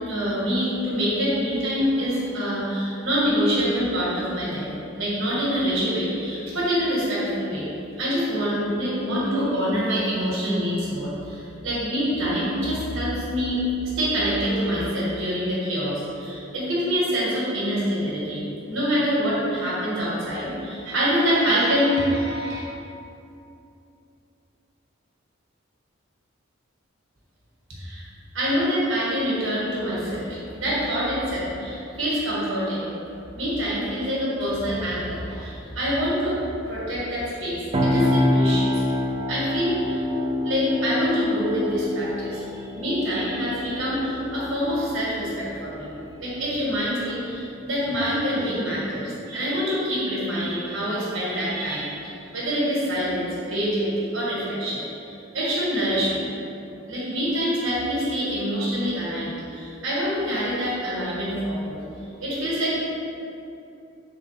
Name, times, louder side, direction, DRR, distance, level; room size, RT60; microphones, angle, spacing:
voice 1, 0.0-4.7 4.9-7.7 8.0-13.6 14.0-18.4 18.7-22.6 27.8-28.0 28.3-32.9 33.3-36.4 36.7-38.7 39.3-40.0 40.4-45.9 46.2-52.0 52.3-56.3 56.9-61.8 62.2-62.7, equal, 85° right, -7 dB, 1.4 m, -25 dB
sound 1, 37.7-47.5, left 1 dB, 30° right, 0.4 m, -27 dB
3.8 x 3.7 x 3.3 m, 2.7 s
head